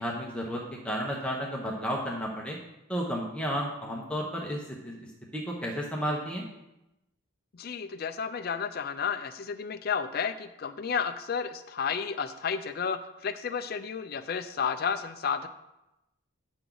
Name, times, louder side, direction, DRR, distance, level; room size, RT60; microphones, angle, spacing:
voice 1, 0.0-2.6 2.9-6.4, equal, 5° left, -2 dB, 0.9 m, -32 dB
voice 2, 7.5-15.5, left 6 dB, 45° left, 9 dB, 0.4 m, -32 dB
9.5 x 5.9 x 3.9 m, 0.92 s
head